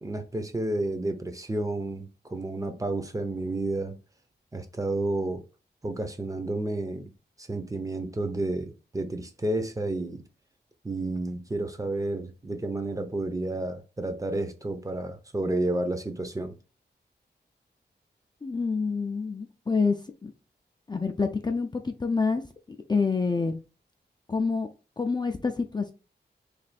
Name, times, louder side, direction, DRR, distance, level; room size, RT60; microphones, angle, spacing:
voice 1, 0.0-4.0 4.5-5.4 5.8-7.1 7.4-10.2 10.8-16.6, right 2 dB, 20° right, 0.6 m, -31 dB
voice 2, 18.4-20.0 20.2-20.3 20.9-22.4 22.9-23.6 24.3-24.7 25.0-25.9, left 4 dB, 25° left, 0.4 m, -27 dB
3.2 x 2.5 x 4.0 m
wide cardioid pair, 100°, 18 cm